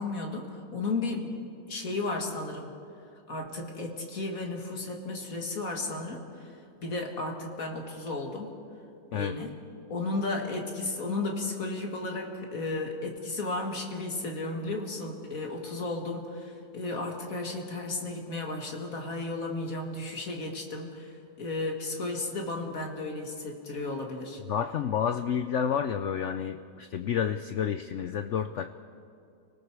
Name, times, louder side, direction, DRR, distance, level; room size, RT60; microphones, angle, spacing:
voice 1, 0.0-1.3 1.7-2.7 3.3-6.6 6.8-8.5 9.1-9.6 9.9-24.4, left 2 dB, 50° left, 1 dB, 2.5 m, -34 dB
voice 2, 24.5-28.7, left 8 dB, 90° left, 10 dB, 0.6 m, -30 dB
30.0 x 19.0 x 4.8 m, 2.5 s
omnidirectional pair, 1.9 m